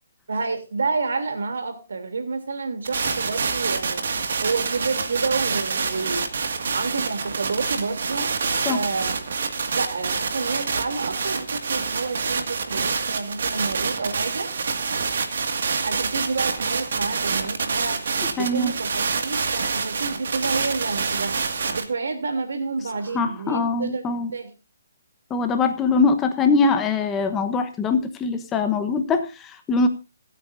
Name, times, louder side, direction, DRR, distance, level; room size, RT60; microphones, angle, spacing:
voice 1, 0.3-4.1 4.4-6.3 6.7-8.3 8.7-9.2 9.7-14.5 15.8-18.0 18.3-21.4 21.7-24.0 24.3-24.5, right 4 dB, 75° right, 6 dB, 3.0 m, -29 dB
sound 1, 2.8-21.8, right 5 dB, 60° right, 2.0 m, -27 dB
voice 2, 18.4-18.7 23.1-24.3 25.3-29.9, left 4 dB, 10° left, 7 dB, 1.0 m, -22 dB
26.0 x 9.0 x 2.6 m, 0.29 s
hypercardioid pair, 170°, 0 cm